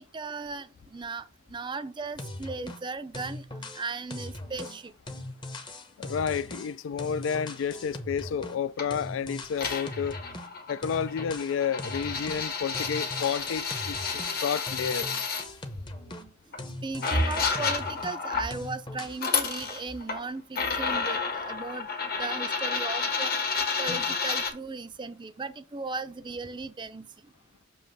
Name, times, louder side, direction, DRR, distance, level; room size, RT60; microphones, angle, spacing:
voice 1, 0.0-3.5 3.7-4.9 16.8-21.9 22.2-23.3 23.8-27.1, right 3 dB, 25° right, 0.5 m, -37 dB
sound 1, 2.2-2.9 3.1-8.7 8.9-10.5 10.8-12.5 12.7-16.3 16.6-18.2 18.5-19.2, left 1 dB, 25° left, 0.8 m, -40 dB
voice 2, 6.0-10.2 10.7-15.3 23.9-24.0, left 7 dB, 75° left, 0.3 m, -31 dB
sound 2, 8.8-8.9 9.6-15.4 16.5-16.6 17.0-18.5 19.1-20.2 20.6-24.5, left 4 dB, 50° left, 1.4 m, -30 dB
7.1 x 3.0 x 5.5 m
head